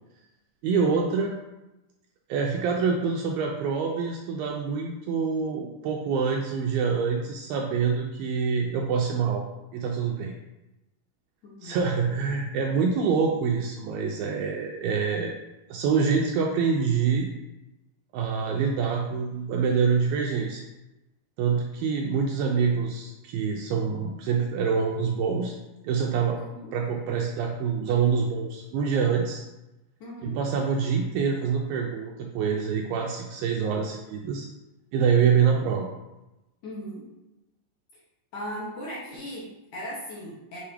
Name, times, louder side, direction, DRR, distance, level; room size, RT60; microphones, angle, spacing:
voice 1, 0.6-1.4 2.3-9.5 9.7-10.3 11.6-15.3 15.7-17.3 18.1-20.7 21.4-25.5 25.8-26.4 26.7-29.4 30.2-34.5 34.9-35.9, right 6 dB, 80° right, 0 dB, 2.1 m, -26 dB
voice 2, 11.4-11.8 26.4-26.7 30.0-30.4 36.6-37.1 38.3-40.6, equal, 65° left, -6 dB, 2.0 m, -38 dB
6.8 x 2.8 x 4.9 m, 0.99 s
omnidirectional pair, 4.6 m